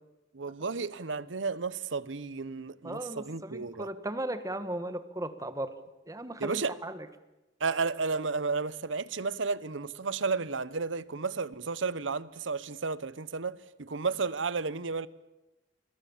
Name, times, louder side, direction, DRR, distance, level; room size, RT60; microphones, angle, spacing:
voice 1, 0.3-3.9 6.4-6.7 7.6-15.1, right 4 dB, 80° right, 0.9 m, -32 dB
voice 2, 2.8-5.7 6.1-7.0, right 1 dB, 20° right, 1.5 m, -36 dB
29.0 x 22.0 x 7.2 m
head